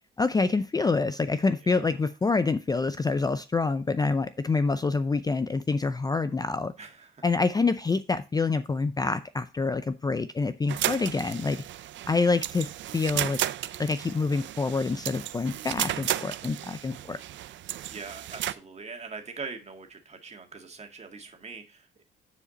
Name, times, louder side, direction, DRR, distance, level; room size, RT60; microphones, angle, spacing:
voice 1, 0.2-6.7 7.2-11.6 12.1-12.7 12.9-13.4 13.8-17.2, left 4 dB, 20° left, 12 dB, 0.4 m, -26 dB
voice 2, 1.6-2.0 6.8-7.2 17.0-17.1 17.8-22.0, right 4 dB, 35° right, 4 dB, 2.0 m, -42 dB
sound 1, 10.7-18.5, right 13 dB, 70° right, 0.5 m, -34 dB
9.5 x 5.0 x 4.0 m, 0.29 s
cardioid pair, 90°, 20 cm